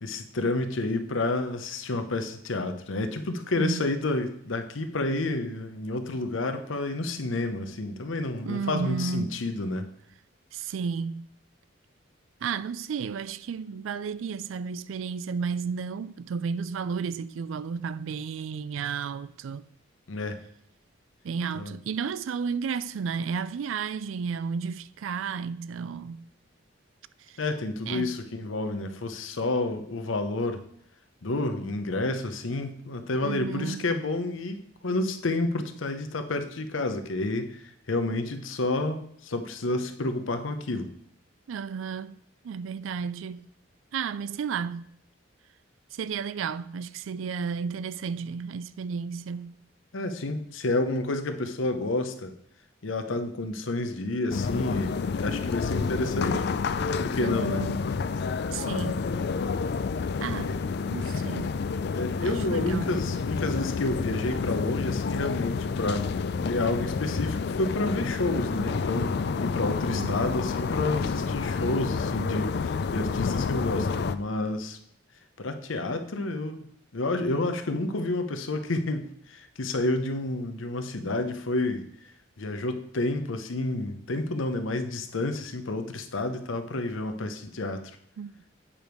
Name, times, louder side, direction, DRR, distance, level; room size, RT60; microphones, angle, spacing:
voice 1, 0.0-9.9 20.1-20.4 21.6-21.7 27.4-30.6 31.2-40.9 49.9-52.3 52.8-56.4 57.0-57.7 60.4-60.6 61.9-74.8 75.4-76.7 76.9-81.9 82.4-87.8, left 2 dB, 80° left, 0.8 m, -30 dB
voice 2, 3.6-3.9 8.4-9.4 10.5-11.3 12.4-19.7 21.2-26.2 27.3-27.4 27.9-28.2 33.2-33.8 41.5-42.2 42.4-43.5 43.9-44.9 45.9-49.6 57.2-57.8 58.5-59.0 60.2-60.6 60.9-61.6 62.2-63.0 69.9-70.3 88.2-88.4, right 6 dB, 80° right, 0.4 m, -33 dB
sound 1, 54.3-74.2, left 5 dB, 55° left, 0.3 m, -29 dB
8.6 x 5.2 x 4.5 m
head